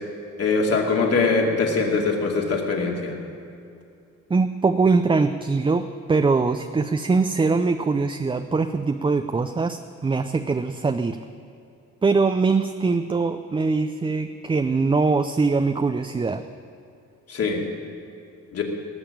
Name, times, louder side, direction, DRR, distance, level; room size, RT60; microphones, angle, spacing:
voice 1, 0.4-3.2 17.3-17.7 18.5-18.6, left 4 dB, 55° left, 0 dB, 2.5 m, -22 dB
voice 2, 4.3-11.2 12.0-16.4, right 4 dB, 15° right, 8 dB, 0.5 m, -22 dB
18.5 x 7.0 x 8.8 m, 2.6 s
cardioid pair, 90°, 30 cm